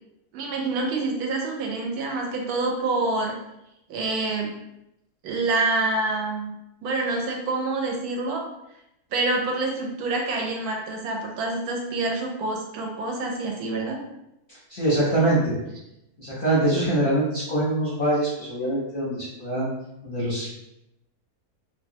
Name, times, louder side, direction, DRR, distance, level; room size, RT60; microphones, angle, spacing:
voice 1, 0.3-3.3 3.9-4.5 5.2-6.5 6.8-8.4 9.1-14.0, right 3 dB, 80° right, 1 dB, 1.1 m, -27 dB
voice 2, 14.7-15.6 16.2-19.7 20.0-20.5, right 1 dB, 50° left, -8 dB, 0.6 m, -24 dB
3.0 x 2.1 x 2.6 m, 0.85 s
omnidirectional pair, 1.6 m